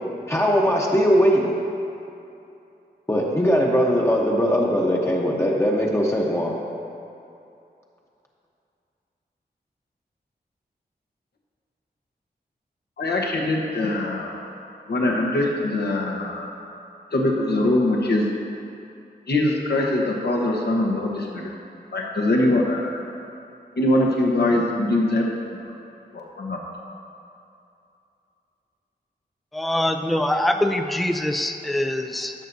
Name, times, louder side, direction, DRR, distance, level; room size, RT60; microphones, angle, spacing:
voice 1, 0.3-1.5 3.1-6.5, equal, 15° left, -3 dB, 0.9 m, -20 dB
voice 2, 13.0-14.4 14.9-16.5 17.1-18.2 19.3-21.5 21.9-23.0 23.8-25.6 26.1-26.6, left 1 dB, 75° left, -1 dB, 1.1 m, -22 dB
voice 3, 29.5-32.3, left 1 dB, ahead, 6 dB, 0.4 m, -23 dB
14.0 x 6.7 x 2.7 m, 2.7 s
wide cardioid pair, 85°, 17 cm